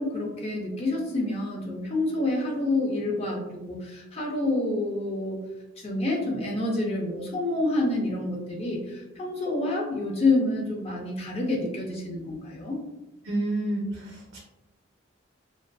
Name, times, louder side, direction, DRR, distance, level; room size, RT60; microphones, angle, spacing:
voice 1, 0.0-5.4 5.8-12.7, left 2 dB, 30° left, -1 dB, 0.4 m, -28 dB
voice 2, 13.2-14.4, right 1 dB, 85° right, -2 dB, 0.5 m, -29 dB
2.4 x 2.3 x 2.2 m, 0.97 s
head